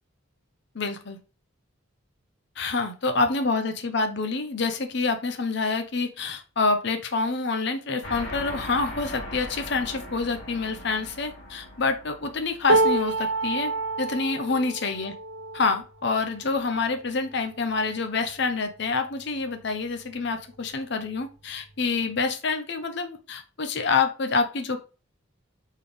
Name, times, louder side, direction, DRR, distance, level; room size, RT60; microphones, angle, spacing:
voice 1, 0.7-1.2 2.6-13.7 14.0-15.1 15.5-24.8, left 4 dB, 55° left, 7 dB, 0.7 m, -27 dB
sound 1, 8.0-13.8, left 1 dB, 75° left, 2.3 m, -40 dB
sound 2, 12.7-18.8 19.4-19.6 19.9-20.7 21.6-21.7, right 2 dB, 80° right, 0.9 m, -29 dB
4.4 x 3.6 x 3.3 m, 0.33 s
head